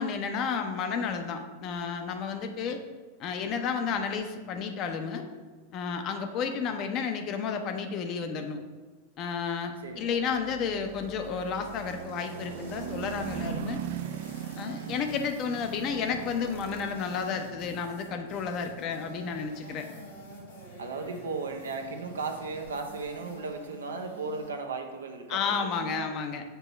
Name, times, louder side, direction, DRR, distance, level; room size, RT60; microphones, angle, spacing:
voice 1, 0.0-2.8 3.2-5.2 5.7-8.6 9.2-13.8 14.6-19.9 25.3-26.4, left 6 dB, 35° left, 5 dB, 0.7 m, -32 dB
voice 2, 9.8-11.0 14.8-15.1 20.8-26.1, right 4 dB, 70° right, 4 dB, 0.7 m, -37 dB
sound 1, 10.0-23.2, right 9 dB, 50° right, 0.4 m, -41 dB
sound 2, 10.9-24.5, left 1 dB, 70° left, 1.9 m, -50 dB
6.8 x 2.9 x 5.7 m, 1.3 s
figure-of-eight pair, 90°, 0 cm